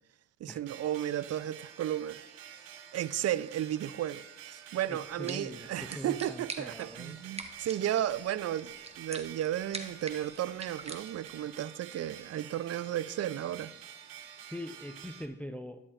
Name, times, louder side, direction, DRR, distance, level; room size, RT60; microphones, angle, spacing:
voice 1, 0.4-2.2 2.9-13.7, right 11 dB, 45° right, 0.5 m, -34 dB
sound 1, 0.7-15.3, right 9 dB, 75° right, 0.8 m, -49 dB
voice 2, 4.9-7.2 14.4-15.8, left 1 dB, 5° left, 0.6 m, -42 dB
sound 2, 5.0-11.5, right 2 dB, 20° right, 1.2 m, -46 dB
12.5 x 7.4 x 2.5 m
hypercardioid pair, 45°, 34 cm